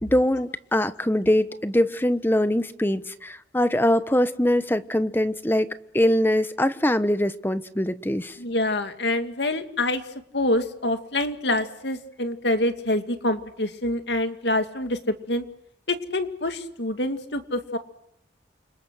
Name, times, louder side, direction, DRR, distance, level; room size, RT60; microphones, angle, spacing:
voice 1, 0.0-8.4, left 1 dB, 10° left, 12 dB, 1.1 m, -23 dB
voice 2, 8.4-10.0 10.3-15.4 15.9-17.8, left 1 dB, 70° left, 8 dB, 2.3 m, -26 dB
29.5 x 26.0 x 6.4 m, 0.73 s
head